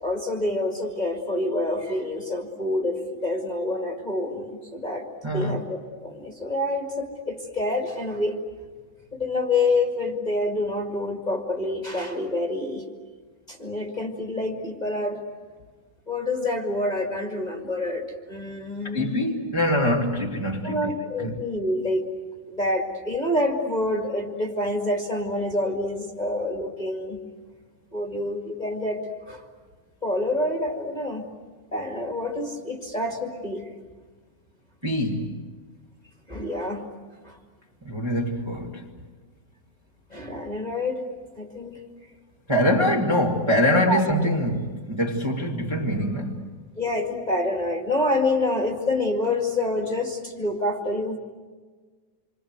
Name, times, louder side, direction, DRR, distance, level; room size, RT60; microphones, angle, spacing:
voice 1, 0.0-8.4 9.1-12.9 13.5-15.2 16.1-19.3 20.6-22.0 22.5-27.2 27.9-29.0 29.3-29.4 30.0-31.2 31.7-33.7 36.3-36.9 37.2-37.4 40.1-41.0 41.4-41.8 43.9-44.0 46.8-51.2, left 2 dB, 15° left, 1.7 m, -27 dB
voice 2, 5.2-5.6 18.9-21.4 34.8-35.4 37.8-38.9 42.5-46.5, left 1 dB, 15° right, 1.2 m, -24 dB
27.5 x 25.5 x 8.2 m
omnidirectional pair, 3.5 m